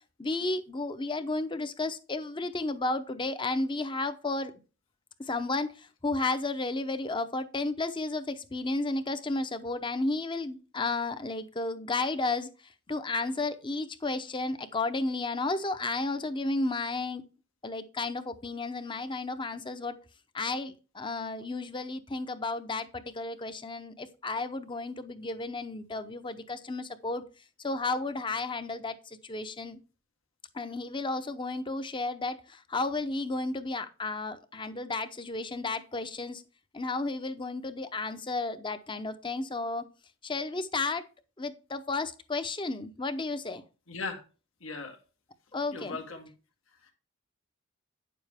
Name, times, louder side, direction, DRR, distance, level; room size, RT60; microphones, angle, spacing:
voice 1, 0.2-4.5 5.3-5.7 6.0-12.5 12.9-17.2 17.6-19.9 20.3-27.2 27.6-29.8 30.5-36.4 36.7-39.8 40.2-41.1 41.4-43.6 45.5-46.0, left 3 dB, 25° left, 10 dB, 0.7 m, -33 dB
voice 2, 43.9-44.2 44.6-45.0 45.7-46.3 46.8-46.9, left 3 dB, 75° left, 3 dB, 1.7 m, -38 dB
9.6 x 7.0 x 3.5 m, 0.33 s
head